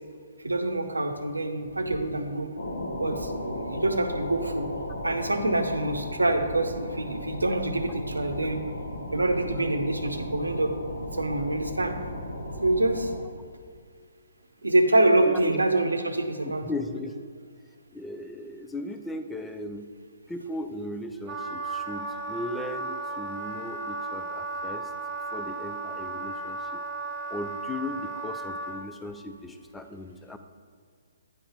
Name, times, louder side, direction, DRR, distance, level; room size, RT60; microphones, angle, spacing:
voice 1, 0.4-2.5 3.0-4.7 5.0-8.6 9.1-11.9 12.6-13.1 14.6-16.6, right 2 dB, 85° right, 6 dB, 0.7 m, -26 dB
sound 1, 2.6-13.2, left 1 dB, 80° left, 1.2 m, -36 dB
voice 2, 15.2-15.6 16.6-17.3 17.9-19.9 20.3-24.9 25.3-26.8 27.3-30.4, left 1 dB, 5° left, 7 dB, 0.4 m, -37 dB
Wind instrument woodwind instrument, 21.3-28.8, right 3 dB, 25° right, 0.7 m, -35 dB
9.5 x 3.9 x 4.4 m, 2.2 s
figure-of-eight pair, 130°, 0 cm